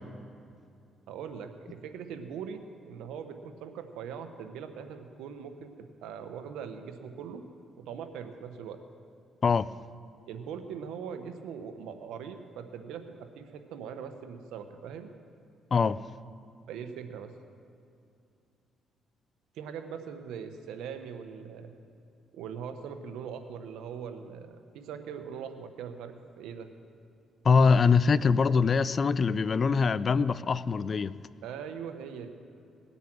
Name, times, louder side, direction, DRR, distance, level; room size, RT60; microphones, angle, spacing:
voice 1, 1.1-5.7 6.0-7.4 7.8-8.8 10.3-15.1 16.7-17.3 19.5-21.7 22.3-26.7 31.4-32.3, right 7 dB, 90° right, 7 dB, 1.0 m, -41 dB
voice 2, 27.4-31.2, left 5 dB, 40° left, 18 dB, 0.3 m, -23 dB
20.0 x 8.3 x 6.1 m, 2.5 s
cardioid pair, 90°, 0 cm